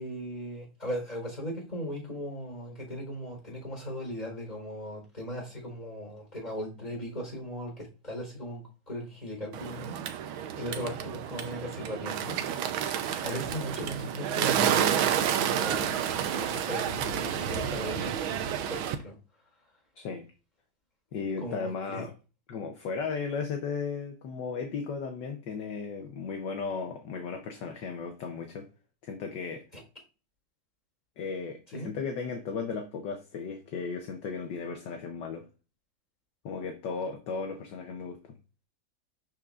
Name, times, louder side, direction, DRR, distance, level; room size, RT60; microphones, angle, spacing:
voice 1, 0.0-12.4 13.2-19.2 21.1-22.0 29.7-29.8 31.7-31.9, equal, 20° left, -2 dB, 3.9 m, -38 dB
Bird, 9.5-18.9, right 9 dB, 85° right, 1.6 m, -30 dB
voice 2, 21.1-22.1 22.5-28.7 29.0-29.6 31.2-35.4 36.4-38.2, left 5 dB, 65° left, 4 dB, 1.4 m, -35 dB
12.0 x 4.7 x 2.4 m, 0.33 s
omnidirectional pair, 2.2 m